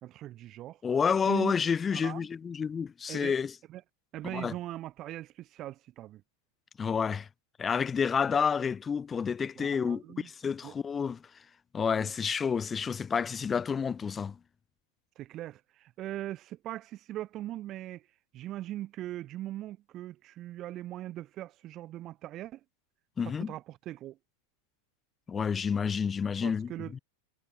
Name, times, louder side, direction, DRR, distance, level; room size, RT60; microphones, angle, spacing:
voice 1, 0.0-0.8 1.2-1.5 1.9-2.3 3.1-3.3 3.7-3.8 4.1-6.2 9.6-10.3 10.6-10.7 12.0-12.1 15.2-18.1 18.3-22.6 23.2-24.2 26.4-27.0, right 14 dB, 35° right, 1.1 m, -40 dB
voice 2, 0.8-3.5 4.3-4.5 6.8-7.3 7.6-11.3 11.7-14.4 23.2-23.5 25.3-27.0, left 6 dB, 20° left, 2.2 m, -29 dB
figure-of-eight pair, 90°, 0 cm